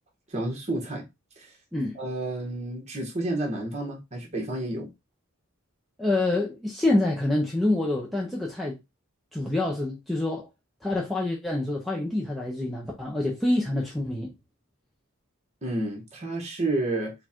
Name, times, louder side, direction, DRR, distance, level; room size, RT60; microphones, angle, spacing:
voice 1, 0.3-1.0 1.4-1.5 1.9-4.9 15.6-17.1, right 2 dB, 30° right, 1.5 m, -30 dB
voice 2, 6.0-8.7 9.3-10.5 10.8-14.3, left 2 dB, ahead, 0.6 m, -26 dB
4.5 x 2.4 x 4.4 m
head